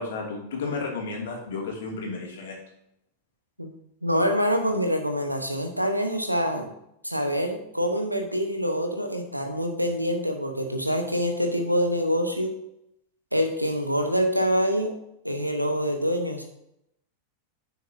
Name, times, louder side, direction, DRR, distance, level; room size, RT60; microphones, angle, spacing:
voice 1, 0.0-2.6, left 4 dB, 60° left, 0 dB, 2.5 m, -32 dB
voice 2, 4.0-6.7 7.0-12.5 13.3-14.9 15.2-16.4, equal, 90° right, 5 dB, 1.1 m, -25 dB
9.9 x 7.2 x 2.8 m, 0.78 s
figure-of-eight pair, 90°, 0 cm